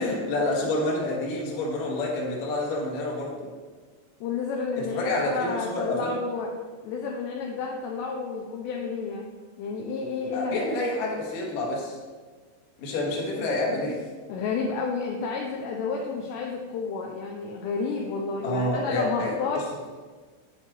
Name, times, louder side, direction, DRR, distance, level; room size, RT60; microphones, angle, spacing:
voice 1, 0.0-3.5 4.8-6.2 10.3-12.0 12.8-14.0 18.4-19.6, left 2 dB, 65° left, -3 dB, 1.9 m, -28 dB
voice 2, 4.2-6.5 6.8-9.3 9.6-10.6 14.3-19.6, left 4 dB, 85° left, 0 dB, 2.5 m, -31 dB
10.5 x 5.7 x 3.1 m, 1.4 s
omnidirectional pair, 5.6 m